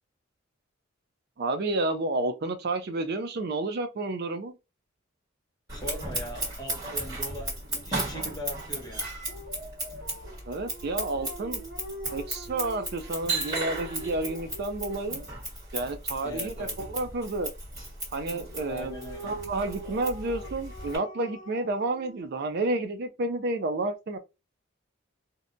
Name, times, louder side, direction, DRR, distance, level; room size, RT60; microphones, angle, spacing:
voice 1, 1.4-4.5 10.5-11.6 12.1-15.3 15.7-17.5 18.1-18.9 19.2-24.2, right 2 dB, 50° right, 0.4 m, -30 dB
voice 2, 5.7-9.1 16.2-16.8 18.6-19.3, equal, 20° left, 0.7 m, -40 dB
Scissors, 5.7-21.0, right 1 dB, 20° right, 1.3 m, -35 dB
Dog, 9.3-15.1 18.3-22.8, right 1 dB, 75° right, 0.9 m, -45 dB
2.7 x 2.1 x 2.5 m
head